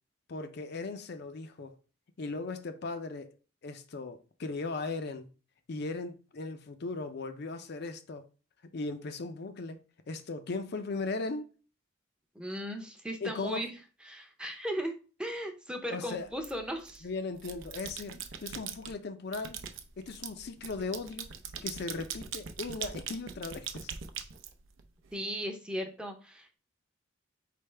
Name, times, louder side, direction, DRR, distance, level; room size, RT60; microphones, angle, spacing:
voice 1, 0.3-1.7 2.2-3.3 3.6-5.3 5.7-8.2 8.7-11.5 13.2-13.6 15.9-16.3 17.0-19.6 20.0-21.3 21.6-23.9, left 3 dB, 55° left, 0.5 m, -37 dB
voice 2, 12.3-13.7 14.0-14.9 15.2-17.1 25.1-26.6, equal, 5° right, 0.6 m, -37 dB
sound 1, 16.4-17.0 17.4-18.9 19.3-25.1, right 7 dB, 75° right, 0.6 m, -41 dB
4.5 x 3.3 x 3.3 m
head